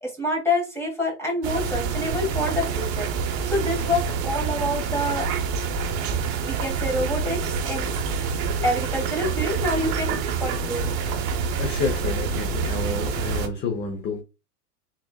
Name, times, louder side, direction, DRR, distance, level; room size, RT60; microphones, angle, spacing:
voice 1, 0.0-3.1 3.5-5.3 6.4-7.9 8.6-10.9, left 1 dB, 5° left, 2.4 m, -27 dB
sound 1, 1.4-13.5, right 5 dB, 40° right, 1.0 m, -27 dB
voice 2, 10.8-11.2 11.6-14.2, left 4 dB, 20° left, 0.7 m, -29 dB
4.4 x 3.8 x 2.3 m
hypercardioid pair, 110°, 47 cm